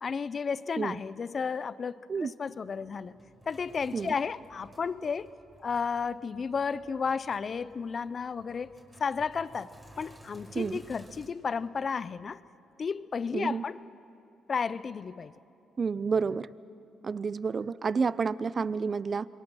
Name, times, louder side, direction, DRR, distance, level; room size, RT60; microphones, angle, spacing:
voice 1, 0.0-1.9 2.2-3.2 3.5-5.3 5.6-8.7 9.0-9.7 10.0-12.4 12.8-13.8 14.5-15.3, left 5 dB, 40° left, 17 dB, 0.6 m, -32 dB
Sink (filling or washing), 2.4-11.3, right 1 dB, 15° right, 4.4 m, -55 dB
voice 2, 13.3-13.6 15.8-16.5 17.0-19.3, right 5 dB, 40° right, 18 dB, 0.5 m, -29 dB
27.0 x 23.0 x 6.2 m, 2.7 s
cardioid pair, 90°, 0 cm